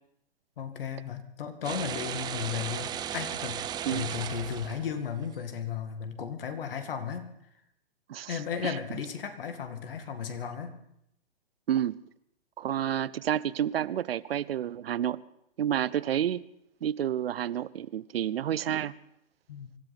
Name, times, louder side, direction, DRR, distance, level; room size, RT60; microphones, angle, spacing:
voice 1, 0.6-7.3 8.3-10.7 19.5-19.7, left 7 dB, 65° left, 8 dB, 2.1 m, -35 dB
sound 1, 1.6-5.3, right 10 dB, 15° right, 0.6 m, -36 dB
voice 2, 8.1-8.8 11.7-12.0 12.6-15.2 15.6-16.4 16.8-18.9, right 10 dB, 70° right, 19 dB, 0.7 m, -30 dB
25.0 x 12.5 x 4.2 m, 0.77 s
hypercardioid pair, 130°, 31 cm